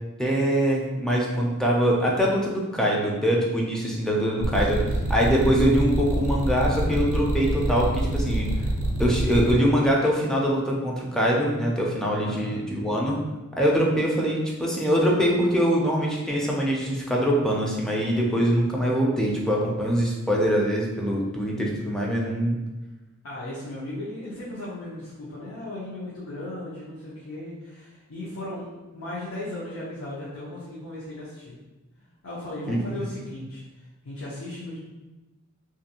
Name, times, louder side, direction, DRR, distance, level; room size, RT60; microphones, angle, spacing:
voice 1, 0.2-4.8 5.1-8.5 9.0-13.2 13.6-22.6 32.7-32.8, equal, 5° left, -3 dB, 0.4 m, -23 dB
sound 1, 4.4-9.5, right 1 dB, 65° right, 0.5 m, -26 dB
voice 2, 4.6-5.1 12.3-12.6 23.2-28.7 28.9-31.6 32.2-34.8, left 1 dB, 65° left, -9 dB, 0.7 m, -36 dB
2.6 x 2.6 x 2.8 m, 1.1 s
head